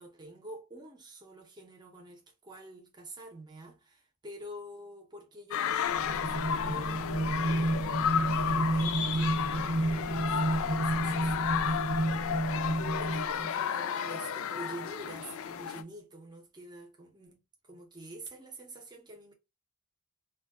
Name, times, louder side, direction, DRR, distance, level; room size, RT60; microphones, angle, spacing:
voice 1, 0.0-12.0 12.8-19.3, right 1 dB, 20° right, 0.6 m, -47 dB
sound 1, 5.5-15.8, left 8 dB, 65° left, 0.3 m, -33 dB
sound 2, 5.9-13.6, right 1 dB, 75° right, 0.5 m, -31 dB
2.3 x 2.2 x 3.4 m
head